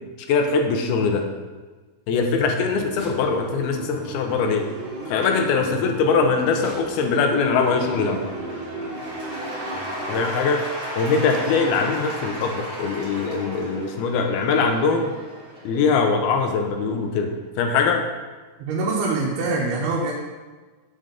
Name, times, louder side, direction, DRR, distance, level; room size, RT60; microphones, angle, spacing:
voice 1, 0.3-1.2 2.1-4.7 5.1-8.2 10.1-10.6 11.0-15.1 15.6-17.3 17.6-18.0, left 5 dB, 85° left, 4 dB, 2.8 m, -22 dB
sound 1, 2.6-10.3, right 2 dB, 65° right, 1.2 m, -36 dB
Cheering / Applause / Crowd, 3.5-16.9, right 1 dB, 20° right, 2.3 m, -36 dB
voice 2, 18.6-20.1, right 3 dB, 90° right, -3 dB, 3.1 m, -24 dB
7.9 x 7.8 x 5.2 m, 1.3 s
omnidirectional pair, 4.4 m